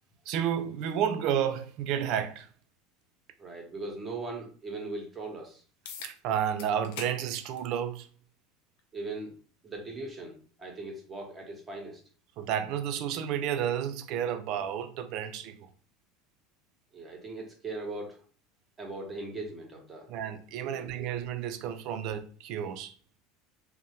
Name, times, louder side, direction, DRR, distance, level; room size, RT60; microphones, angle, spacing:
voice 1, 0.3-2.5 6.0-8.1 12.4-15.7 20.1-22.9, right 9 dB, 60° right, 0.4 m, -31 dB
voice 2, 3.4-5.6 8.9-9.3 9.6-12.0 16.9-18.2 18.8-20.1 20.6-21.1, right 2 dB, 25° right, 0.8 m, -39 dB
sound 1, 5.8-6.1 6.6-7.2 7.6-7.7 8.8-8.9 13.8-13.9, left 6 dB, 75° left, 0.5 m, -42 dB
2.6 x 2.1 x 2.9 m
supercardioid pair, 105°, 0 cm